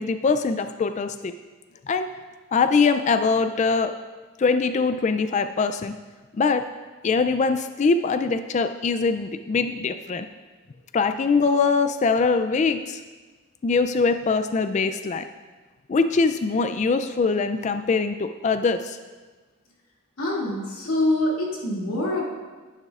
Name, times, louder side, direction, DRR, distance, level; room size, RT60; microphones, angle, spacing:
voice 1, 0.0-1.3 1.9-2.1 2.5-3.9 4.4-5.9 6.3-6.6 7.0-10.3 10.9-13.0 13.6-15.2 15.9-19.0, left 4 dB, 35° left, 9 dB, 0.3 m, -22 dB
voice 2, 20.2-22.2, left 1 dB, 85° left, -4 dB, 2.4 m, -25 dB
11.0 x 10.0 x 2.4 m, 1.3 s
head